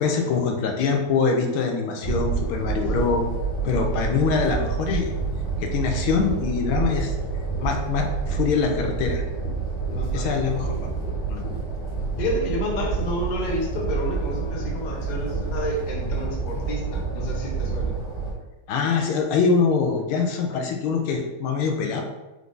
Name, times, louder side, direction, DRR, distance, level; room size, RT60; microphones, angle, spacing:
voice 1, 0.0-3.3 3.6-5.1 5.6-7.1 7.6-9.2 10.1-10.8 11.3-11.4 18.7-22.0, left 5 dB, 80° left, 3 dB, 1.5 m, -24 dB
sound 1, 2.0-18.3, right 5 dB, 50° left, 1.6 m, -28 dB
voice 2, 9.9-10.3 12.2-17.9, left 1 dB, 65° left, -2 dB, 0.4 m, -30 dB
4.6 x 2.6 x 3.6 m, 1.1 s
omnidirectional pair, 2.3 m